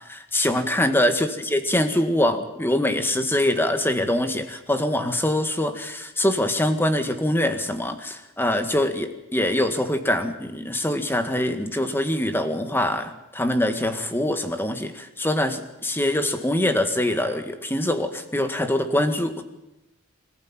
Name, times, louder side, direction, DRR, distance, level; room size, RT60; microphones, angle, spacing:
voice 1, 0.1-19.4, left 1 dB, 10° left, 7 dB, 1.8 m, -24 dB
25.5 x 14.5 x 8.9 m, 0.93 s
head